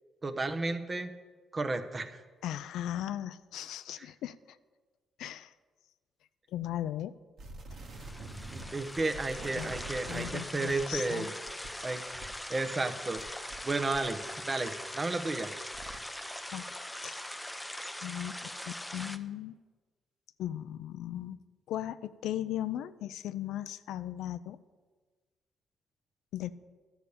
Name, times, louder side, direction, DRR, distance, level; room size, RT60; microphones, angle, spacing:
voice 1, 0.2-1.1 1.5-2.2 4.0-4.1 8.5-11.3 11.8-12.0 12.5-15.5, right 2 dB, 30° right, 8 dB, 1.0 m, -33 dB
voice 2, 2.4-4.3 5.2-5.5 6.5-7.1 9.6-9.7 10.1-11.3 16.5-16.7 17.0-17.2 18.0-19.6 20.4-21.4 21.7-24.6 26.3-26.5, left 12 dB, 85° left, 14 dB, 0.4 m, -37 dB
sound 1, 7.4-13.7 13.9-16.0, right 2 dB, 60° right, 1.6 m, -47 dB
sound 2, 7.8-19.2, left 1 dB, 5° left, 0.7 m, -42 dB
11.0 x 6.7 x 8.5 m, 1.4 s
cardioid pair, 90°, 0 cm